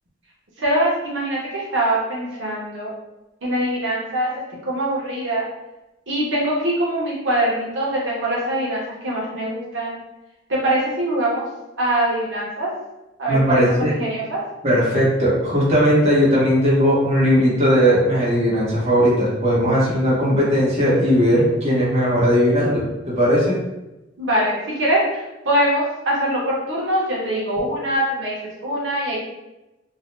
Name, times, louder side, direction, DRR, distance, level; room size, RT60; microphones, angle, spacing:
voice 1, 0.6-2.9 3.4-4.3 4.6-5.4 6.1-10.0 10.5-11.4 11.8-12.7 13.2-14.4 24.2-29.2, right 1 dB, 85° right, -5 dB, 0.9 m, -23 dB
voice 2, 13.3-13.9 14.6-23.6, equal, 35° right, -7 dB, 0.9 m, -18 dB
2.7 x 2.1 x 3.1 m, 0.98 s
head